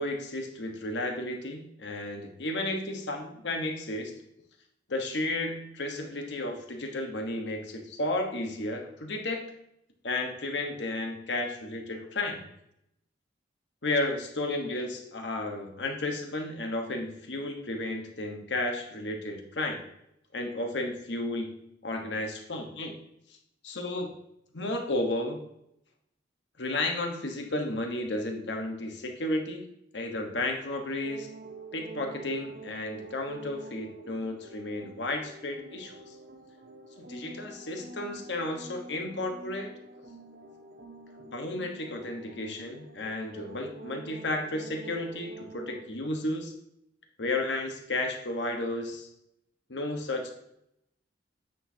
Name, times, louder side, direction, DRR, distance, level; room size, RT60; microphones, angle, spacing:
voice 1, 0.0-4.1 4.9-9.4 10.0-12.4 13.8-19.8 20.3-21.5 21.8-23.0 23.6-24.1 24.5-25.4 26.6-29.7 29.9-31.3 31.7-36.1 37.1-39.7 41.2-46.5 47.2-49.1 49.7-50.3, left 2 dB, 75° left, 3 dB, 1.3 m, -33 dB
sound 1, 30.9-45.8, right 2 dB, 60° right, 0.8 m, -47 dB
8.9 x 6.2 x 2.8 m, 0.78 s
head